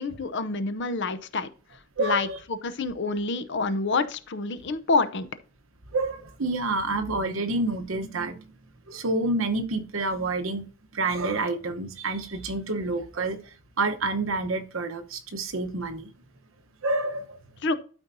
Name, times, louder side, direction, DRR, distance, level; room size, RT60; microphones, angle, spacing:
voice 1, 0.0-1.5 2.0-5.3 17.6-17.7, left 3 dB, 60° left, 12 dB, 0.7 m, -27 dB
voice 2, 2.0-2.4 5.9-8.5 8.9-10.6 10.9-13.4 13.8-16.1 16.8-17.4, right 2 dB, 70° right, 8 dB, 1.0 m, -28 dB
12.5 x 4.5 x 2.7 m, 0.39 s
head